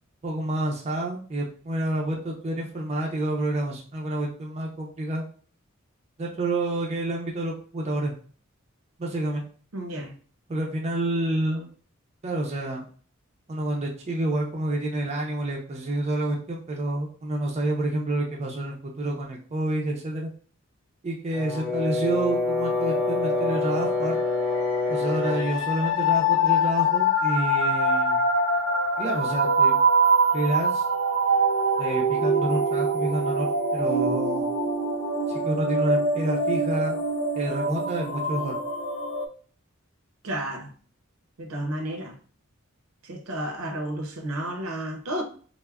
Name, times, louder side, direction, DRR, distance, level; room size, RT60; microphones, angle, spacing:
voice 1, 0.2-5.2 6.2-8.1 9.0-9.4 10.5-11.7 12.2-12.8 13.5-20.3 21.0-24.2 24.9-28.2 29.0-29.8 30.3-30.8 31.8-34.5 35.3-37.0 37.3-38.5, right 1 dB, 30° right, 0.4 m, -28 dB
voice 2, 9.7-10.1 40.2-40.7 41.4-42.2 43.0-45.2, right 1 dB, 75° right, 0.6 m, -32 dB
Brass instrument, 21.3-25.6, left 3 dB, ahead, 0.9 m, -26 dB
sound 1, 22.5-39.3, right 1 dB, 80° left, 0.4 m, -24 dB
3.2 x 2.0 x 2.3 m
head